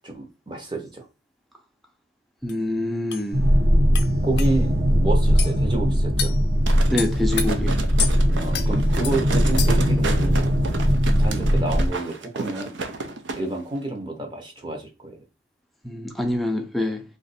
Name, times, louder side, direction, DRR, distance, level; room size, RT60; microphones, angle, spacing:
voice 1, 0.0-1.1 4.2-6.4 8.3-10.5 11.2-12.8 13.4-15.1, right 2 dB, 25° right, 0.8 m, -30 dB
voice 2, 2.4-3.5 6.9-7.8 15.8-17.0, left 1 dB, ahead, 0.5 m, -26 dB
sound 1, 2.5-2.6 3.1-3.2 3.9-4.1 4.4-4.5 5.4-5.5 6.2-6.4 7.0-7.5 8.0-8.2 8.5-8.7 9.0-9.2 9.6-9.9, left 8 dB, 60° left, 0.5 m, -28 dB
sound 2, 3.3-11.9, equal, 55° right, 0.9 m, -20 dB
sound 3, 6.7-13.4 13.7-13.8, right 3 dB, 75° right, 0.6 m, -33 dB
2.9 x 2.5 x 4.1 m
head